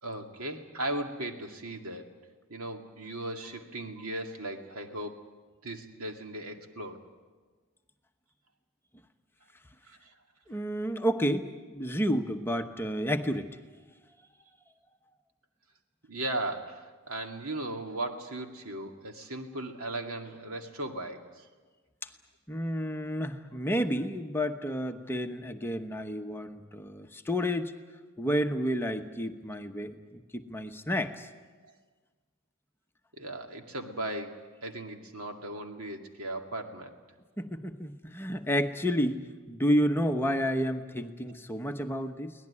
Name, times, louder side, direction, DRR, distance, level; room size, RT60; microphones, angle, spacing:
voice 1, 0.0-2.1 2.5-5.2 5.6-7.0 9.8-10.1 16.1-21.5 31.6-31.7 33.2-36.9 41.3-41.4, right 1 dB, 85° right, 4 dB, 2.3 m, -37 dB
voice 2, 10.5-13.6 22.5-27.7 28.2-31.3 37.4-42.3, equal, 10° left, 6 dB, 1.0 m, -30 dB
23.5 x 18.5 x 9.8 m, 1.4 s
head